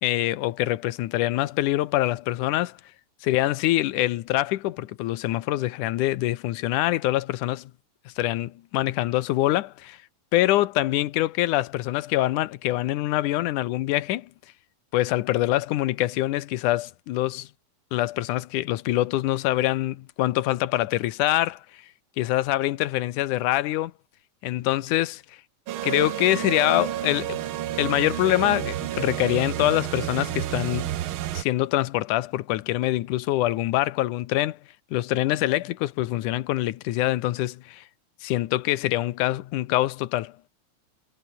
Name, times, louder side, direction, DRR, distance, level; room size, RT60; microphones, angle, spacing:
voice 1, 0.0-2.8 3.2-7.7 8.2-10.0 10.3-14.3 14.9-17.5 17.9-21.6 22.2-23.9 24.4-25.2 25.8-27.4 27.8-31.0 31.3-34.6 34.9-37.8 38.2-40.3, left 16 dB, 85° left, 2.4 m, -24 dB
sound 1, 25.7-31.4, right 13 dB, 90° right, 1.1 m, -30 dB
omnidirectional pair, 3.5 m